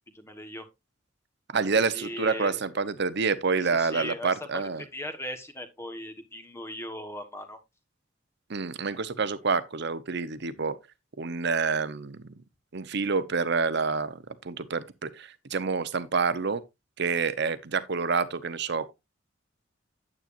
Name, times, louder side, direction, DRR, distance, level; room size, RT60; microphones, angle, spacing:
voice 1, 0.1-0.7 1.7-2.7 3.6-7.6, left 1 dB, 15° left, 1.2 m, -39 dB
voice 2, 1.5-4.8 8.5-10.7 11.2-12.2 12.7-14.2 14.4-16.6 17.0-18.9, right 4 dB, 60° right, 0.8 m, -28 dB
9.2 x 8.8 x 2.5 m
head